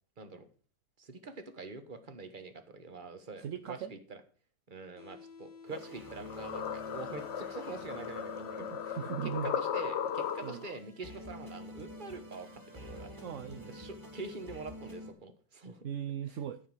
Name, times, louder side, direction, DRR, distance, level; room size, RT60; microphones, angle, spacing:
voice 1, 1.0-4.2 4.7-13.1 13.7-15.8, right 3 dB, 30° right, 9 dB, 1.3 m, -45 dB
voice 2, 3.4-3.9 8.6-9.6 10.4-10.6 13.2-13.8 15.8-16.6, right 8 dB, 60° right, 10 dB, 0.8 m, -38 dB
sound 1, 5.0-10.9, left 5 dB, 80° left, 2.0 m, -52 dB
sound 2, 5.7-10.8, left 8 dB, 65° left, 0.7 m, -37 dB
sound 3, 5.7-15.1, left 1 dB, 10° right, 2.2 m, -49 dB
14.0 x 4.8 x 7.2 m, 0.41 s
omnidirectional pair, 2.0 m